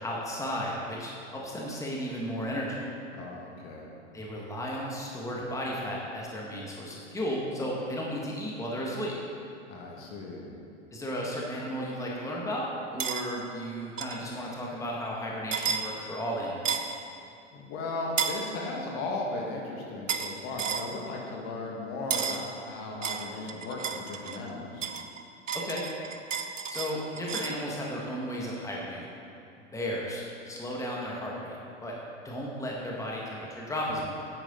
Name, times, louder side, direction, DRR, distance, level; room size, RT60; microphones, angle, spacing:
voice 1, 0.0-2.8 4.1-9.1 10.9-16.8 25.5-25.8 26.7-29.1 29.7-32.0 32.2-34.1, equal, 10° left, -3 dB, 1.8 m, -34 dB
voice 2, 3.1-3.9 9.7-10.6 17.5-24.9, left 2 dB, 50° left, -2 dB, 2.0 m, -36 dB
sound 1, 13.0-13.2 14.0-14.2 15.5-15.8 16.7-17.0 18.2-18.4 20.1-20.3 20.6-20.9 22.1-22.4 23.0-24.4 24.8-27.6, right 6 dB, 90° right, 0.7 m, -32 dB
9.9 x 9.1 x 4.0 m, 2.7 s
hypercardioid pair, 95°, 36 cm